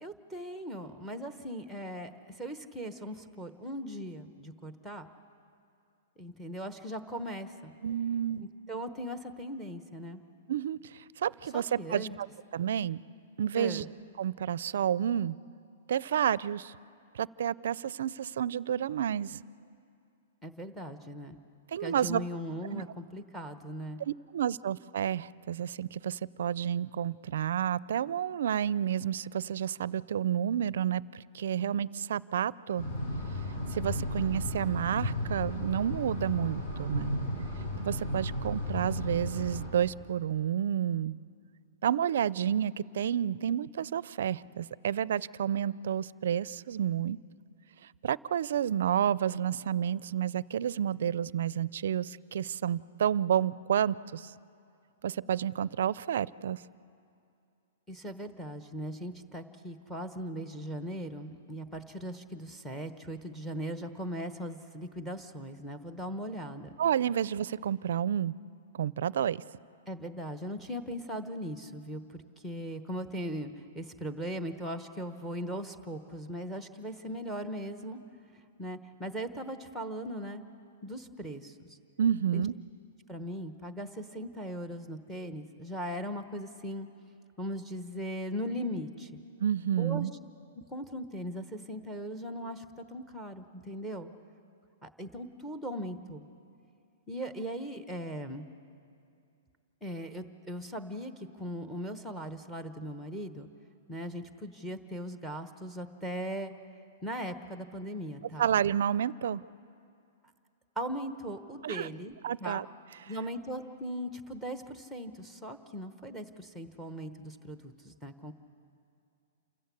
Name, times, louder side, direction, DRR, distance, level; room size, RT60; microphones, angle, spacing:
voice 1, 0.0-5.1 6.2-7.7 8.7-10.2 11.5-12.1 13.6-13.9 20.4-21.4 21.8-24.0 57.9-66.7 69.9-78.0 78.6-80.4 80.8-81.8 82.3-82.4 83.1-86.9 87.4-89.2 89.8-90.1 90.7-94.1 94.8-96.3 97.1-98.5 99.8-103.5 103.9-106.5 107.0-108.5 110.8-112.1 112.4-112.6 113.1-118.3, equal, ahead, 8 dB, 1.0 m, -39 dB
voice 2, 7.8-8.4 10.5-12.3 12.5-13.0 13.4-13.8 14.2-15.4 15.9-16.7 17.1-19.4 21.7-22.2 22.7-22.9 24.0-32.9 33.7-37.2 37.8-41.2 41.8-47.2 48.0-54.3 55.0-56.6 66.8-68.3 68.8-69.4 82.0-82.5 89.4-90.1 108.4-109.4 111.6-111.9 112.2-112.7, right 9 dB, 70° right, 20 dB, 0.4 m, -30 dB
sound 1, 32.8-39.7, left 1 dB, 50° left, 7.4 m, -34 dB
28.5 x 14.5 x 8.4 m, 2.5 s
hypercardioid pair, 160°, 0 cm